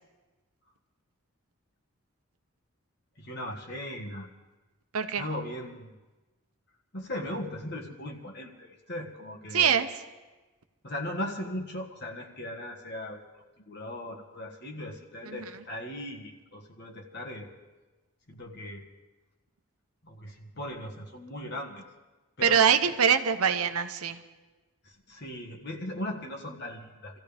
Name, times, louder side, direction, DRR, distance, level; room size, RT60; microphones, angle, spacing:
voice 1, 3.2-4.3 5.2-5.9 6.9-9.7 10.8-13.2 13.7-17.5 18.3-18.8 20.0-21.8 22.4-22.6 24.8-27.2, left 1 dB, 50° left, 0 dB, 1.5 m, -38 dB
voice 2, 4.9-5.3 9.5-9.9 15.2-15.4 22.4-24.2, right 7 dB, 85° right, 9 dB, 0.9 m, -23 dB
25.5 x 15.0 x 3.5 m, 1.2 s
head